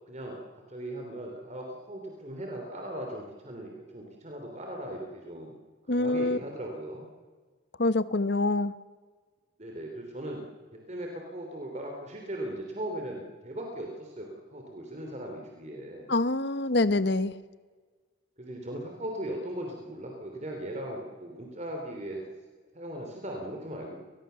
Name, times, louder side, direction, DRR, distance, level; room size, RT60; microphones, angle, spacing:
voice 1, 0.1-0.4 0.7-5.5 5.9-7.1 9.6-10.4 10.9-16.1 18.4-22.2 22.7-24.0, right 1 dB, 35° right, 1 dB, 3.2 m, -38 dB
voice 2, 5.9-6.4 7.8-8.7 16.1-17.3, left 2 dB, 55° left, 14 dB, 1.0 m, -25 dB
29.0 x 20.0 x 6.9 m, 1.5 s
head